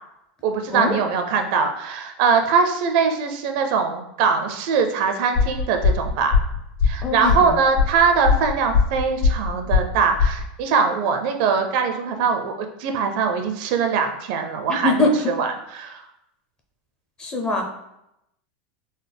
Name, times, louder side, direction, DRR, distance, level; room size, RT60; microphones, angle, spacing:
voice 1, 0.4-6.4 6.8-16.0, right 5 dB, 60° right, 5 dB, 0.5 m, -22 dB
sound 1, 5.3-10.5, left 5 dB, 65° left, 1.5 m, -20 dB
voice 2, 7.0-7.5 14.7-15.1 17.2-17.6, left 2 dB, 20° left, 1 dB, 0.6 m, -22 dB
3.9 x 2.0 x 3.4 m, 0.84 s
supercardioid pair, 135°, 5 cm